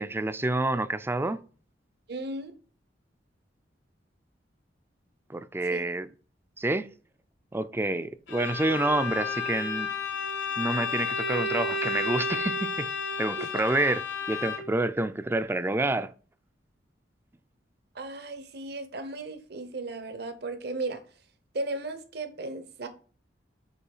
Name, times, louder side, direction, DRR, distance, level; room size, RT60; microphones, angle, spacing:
voice 1, 0.0-1.4 5.3-6.1 6.6-6.9 7.5-9.9 10.6-12.9 13.2-16.1, right 2 dB, 15° right, 0.4 m, -28 dB
voice 2, 2.1-2.5 5.7-5.8 13.4-13.5 17.9-21.0 21.5-22.9, right 2 dB, 65° right, 1.0 m, -35 dB
Bowed string instrument, 8.3-14.9, left 4 dB, 90° left, 1.6 m, -31 dB
8.1 x 3.1 x 5.5 m
head